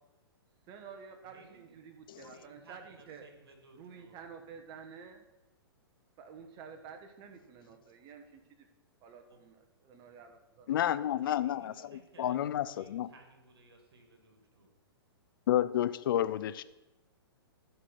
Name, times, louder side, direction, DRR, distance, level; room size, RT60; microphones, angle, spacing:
voice 1, 0.7-3.2 3.8-5.2 6.2-8.7 9.0-10.7, right 6 dB, 35° right, 5 dB, 1.4 m, -50 dB
voice 2, 1.2-1.8 2.2-4.2 9.3-9.4 10.9-14.7, right 3 dB, 70° right, 5 dB, 2.2 m, -59 dB
voice 3, 10.7-13.1 15.5-16.6, left 11 dB, 60° left, 15 dB, 0.5 m, -30 dB
12.0 x 4.8 x 6.0 m, 1.0 s
hypercardioid pair, 120°, 13 cm